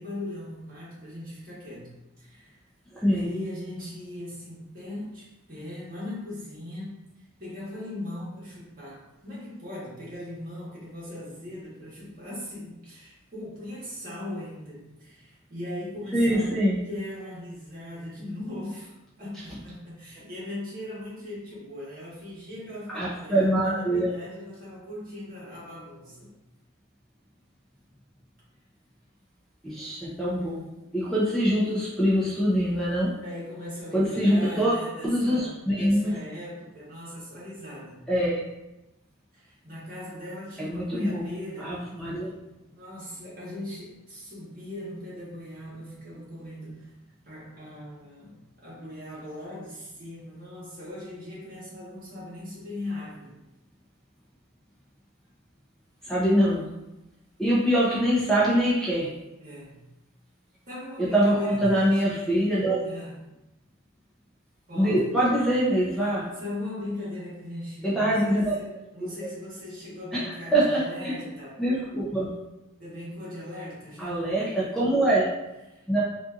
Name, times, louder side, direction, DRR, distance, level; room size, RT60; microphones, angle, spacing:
voice 1, 0.0-1.9 2.2-2.6 3.1-7.0 7.4-16.5 16.9-26.3 33.2-38.1 39.3-41.8 42.7-46.9 47.3-53.3 59.4-59.8 60.7-62.4 62.8-63.1 64.7-65.2 65.9-71.6 72.8-74.3 75.7-75.9, left 1 dB, 45° right, -7 dB, 1.4 m, -39 dB
voice 2, 2.9-3.3 16.1-16.8 22.9-24.1 29.6-30.7 30.9-33.1 33.9-34.7 35.0-36.1 38.1-38.4 40.6-42.3 56.0-56.6 57.4-59.1 61.0-62.8 64.7-66.2 67.8-68.5 70.1-71.1 71.6-72.3 74.0-75.3 75.9-76.0, right 1 dB, ahead, -8 dB, 0.6 m, -24 dB
4.0 x 2.6 x 2.4 m, 0.96 s
head